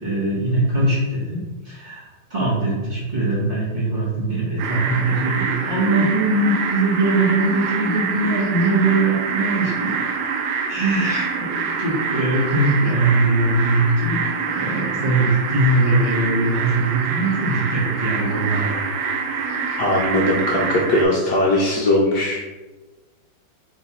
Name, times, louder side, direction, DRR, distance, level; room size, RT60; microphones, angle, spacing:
voice 1, 0.0-9.9 10.7-14.2 14.5-18.7, right 2 dB, 35° right, -9 dB, 1.1 m, -21 dB
sound 1, 4.6-21.1, right 5 dB, 85° right, 1.4 m, -26 dB
voice 2, 19.8-22.5, left 1 dB, 70° left, -2 dB, 1.1 m, -20 dB
3.6 x 3.0 x 4.0 m, 1.2 s
omnidirectional pair, 2.2 m